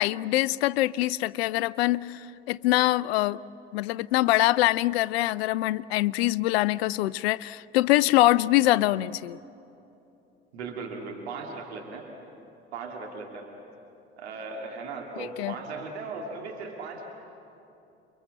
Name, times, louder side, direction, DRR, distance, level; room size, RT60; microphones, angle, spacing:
voice 1, 0.0-3.4 3.7-9.4 15.4-15.5, left 17 dB, 65° left, 18 dB, 0.5 m, -24 dB
voice 2, 10.5-12.1 12.7-13.5 14.2-17.1, right 4 dB, 70° right, 1 dB, 2.5 m, -37 dB
29.5 x 22.5 x 7.5 m, 2.9 s
figure-of-eight pair, 60°, 33 cm